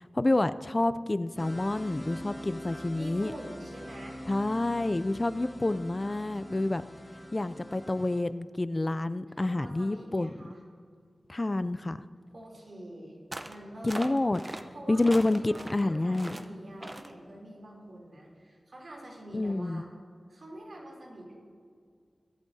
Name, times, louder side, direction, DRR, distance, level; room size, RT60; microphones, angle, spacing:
voice 1, 0.1-3.3 4.3-6.8 7.3-10.3 11.3-12.0 13.8-14.4 14.9-16.3 19.3-19.8, left 2 dB, 35° left, 14 dB, 0.3 m, -28 dB
sound 1, 1.4-8.2, equal, 10° left, 1.5 m, -44 dB
voice 2, 2.9-4.2 9.4-10.6 12.3-13.2 13.4-14.0 14.7-19.9 20.3-21.3, right 1 dB, 70° right, -3 dB, 3.1 m, -46 dB
sound 2, 13.3-13.6 13.9-14.6 15.0-15.8 16.1-16.5 16.8-17.1, right 1 dB, 30° right, 0.7 m, -40 dB
22.5 x 8.3 x 2.7 m, 2.1 s
wide cardioid pair, 60°, 0 cm